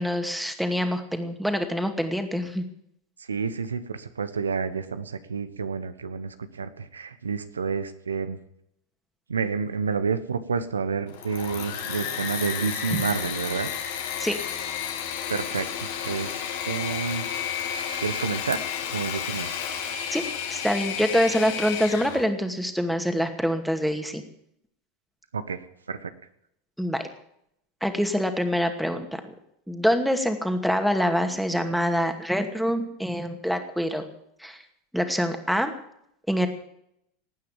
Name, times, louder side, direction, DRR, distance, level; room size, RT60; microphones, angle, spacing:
voice 1, 0.0-2.7 12.9-13.0 14.2-14.4 20.1-20.2 20.5-24.2 26.8-27.0 27.8-29.2 29.7-34.1 34.4-34.6 34.9-35.7 36.3-36.5, equal, ahead, 6 dB, 2.3 m, -25 dB
voice 2, 3.3-8.4 9.3-13.7 15.3-18.6 18.9-19.6 25.3-25.6 25.9-26.1, right 5 dB, 85° right, 12 dB, 1.2 m, -29 dB
Engine / Mechanisms, 11.1-22.3, left 8 dB, 65° left, 2.3 m, -32 dB
19.0 x 9.4 x 7.4 m, 0.74 s
hypercardioid pair, 85°, 0 cm